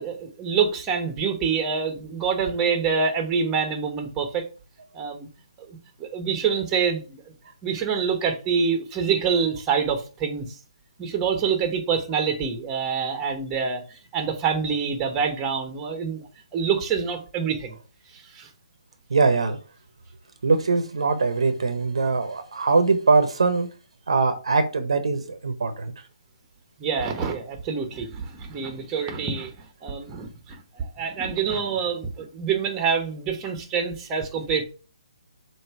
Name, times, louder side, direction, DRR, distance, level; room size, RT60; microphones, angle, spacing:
voice 1, 0.0-4.4 4.9-5.3 5.6-7.2 7.6-10.5 11.0-13.8 14.1-17.8 18.1-18.5 26.8-29.5 29.8-34.6, right 6 dB, 15° right, 1.1 m, -26 dB
voice 2, 19.1-19.6 20.4-23.7 24.1-25.9, right 4 dB, 65° right, 0.9 m, -22 dB
7.6 x 2.8 x 4.5 m
figure-of-eight pair, 140°, 3 cm